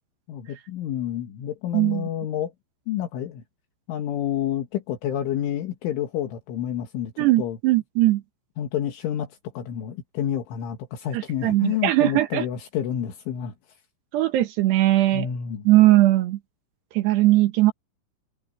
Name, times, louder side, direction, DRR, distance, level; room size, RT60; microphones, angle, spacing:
voice 1, 0.3-2.5 2.9-3.4 3.9-7.1 7.4-7.6 8.6-9.3 9.6-13.5 15.1-15.7, left 10 dB, 75° left, 4.5 m, -29 dB
voice 2, 1.7-2.1 7.2-8.2 11.1-12.5 14.1-15.3 15.6-16.4 16.9-17.7, right 16 dB, 70° right, 3.0 m, -19 dB
omnidirectional pair, 5.7 m